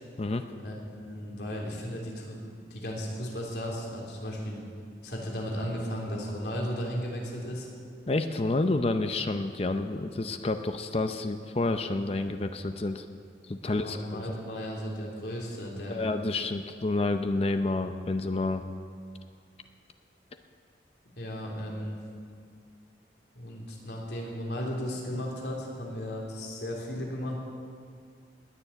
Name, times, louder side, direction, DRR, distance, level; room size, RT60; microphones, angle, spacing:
voice 1, 0.6-2.4 2.7-4.6 5.0-7.7 13.6-16.0 21.2-22.0 23.3-27.4, equal, 70° left, -2 dB, 3.4 m, -35 dB
voice 2, 8.1-13.1 13.5-14.3 15.9-18.7, left 2 dB, 35° left, 8 dB, 0.5 m, -29 dB
20.0 x 7.2 x 9.1 m, 2.2 s
head